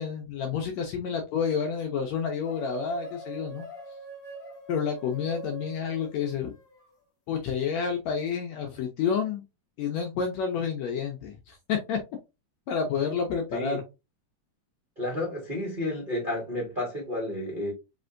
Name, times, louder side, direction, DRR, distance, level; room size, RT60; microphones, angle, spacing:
voice 1, 0.0-3.7 4.7-6.5 7.3-9.4 9.8-12.0 12.7-13.8, left 6 dB, 75° left, 1.6 m, -29 dB
sound 1, 2.4-6.9, right 2 dB, 45° left, 1.7 m, -43 dB
voice 2, 15.0-17.7, left 1 dB, 70° right, 0.4 m, -31 dB
5.0 x 3.3 x 2.5 m
omnidirectional pair, 3.8 m